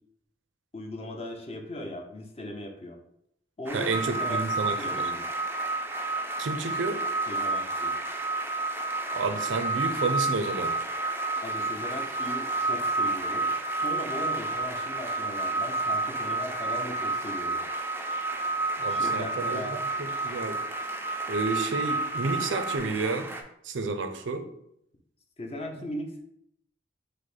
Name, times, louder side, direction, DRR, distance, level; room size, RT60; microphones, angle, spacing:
voice 1, 0.7-3.0 3.6-4.4 4.8-5.3 7.3-7.9 11.4-17.6 18.9-19.8 25.4-26.2, left 1 dB, 35° left, 2 dB, 0.6 m, -38 dB
sound 1, 3.7-23.4, right 2 dB, 10° right, 0.4 m, -39 dB
voice 2, 3.7-5.1 6.4-7.0 9.1-10.7 18.8-19.8 20.2-20.6 21.3-23.3 23.6-24.4, right 3 dB, 80° right, 7 dB, 0.5 m, -30 dB
sound 2, 3.9-22.8, right 2 dB, 65° left, 0.8 m, -30 dB
5.0 x 2.1 x 4.1 m, 0.75 s
head